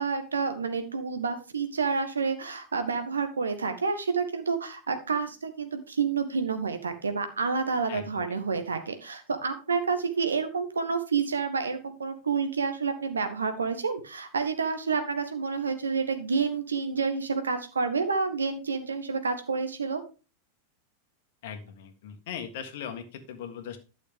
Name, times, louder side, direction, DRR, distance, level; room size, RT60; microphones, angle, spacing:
voice 1, 0.0-20.0, right 5 dB, 75° right, 8 dB, 1.6 m, -29 dB
voice 2, 7.9-8.2 21.4-23.8, left 8 dB, 55° left, 8 dB, 1.6 m, -39 dB
12.0 x 6.6 x 3.7 m, 0.34 s
figure-of-eight pair, 90°, 0 cm